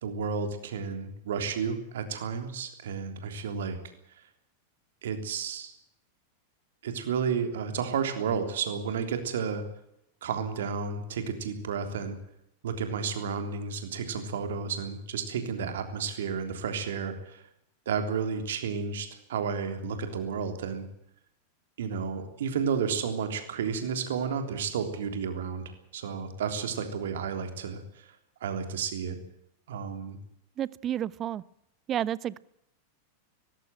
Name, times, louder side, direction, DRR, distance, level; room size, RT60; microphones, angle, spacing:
voice 1, 0.0-3.8 5.0-5.7 6.8-9.6 10.2-12.2 12.6-17.4 17.9-20.9 21.8-25.6 25.9-28.1 28.4-29.2 29.7-30.2, right 6 dB, 60° right, 7 dB, 3.4 m, -32 dB
voice 2, 30.6-31.4 31.9-32.4, right 11 dB, 30° right, 22 dB, 0.7 m, -30 dB
19.0 x 16.0 x 9.0 m, 0.78 s
figure-of-eight pair, 90°, 0 cm